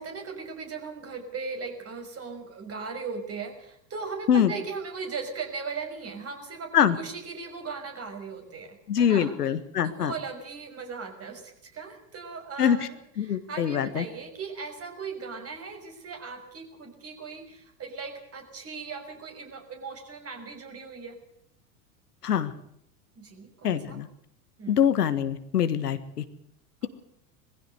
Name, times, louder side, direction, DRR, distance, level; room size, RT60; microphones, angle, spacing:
voice 1, 0.0-9.3 9.8-13.0 13.2-21.2 23.2-24.0 24.6-24.8, right 5 dB, 30° right, 5 dB, 6.0 m, -38 dB
voice 2, 8.9-10.1 12.6-12.9 13.2-14.1 22.2-22.5 23.6-24.1 24.7-26.2, left 9 dB, 85° left, 11 dB, 1.6 m, -24 dB
20.5 x 15.5 x 8.1 m, 0.75 s
hypercardioid pair, 90°, 46 cm